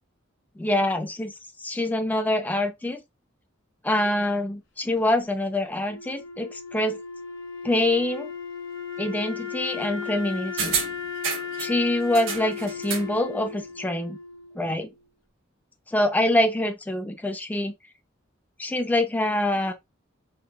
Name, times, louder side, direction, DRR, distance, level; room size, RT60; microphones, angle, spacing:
voice 1, 0.6-1.3 1.6-3.0 3.8-7.0 7.6-8.3 9.0-10.8 11.6-14.2 14.6-14.9 15.9-17.7 18.6-19.7, left 1 dB, 10° left, 0.3 m, -25 dB
Wind instrument woodwind instrument, 5.9-14.9, left 6 dB, 70° left, 0.7 m, -36 dB
sound 1, 10.6-11.7 12.1-13.2 13.5-13.6, right 5 dB, 85° right, 1.2 m, -30 dB
3.5 x 2.6 x 2.3 m
head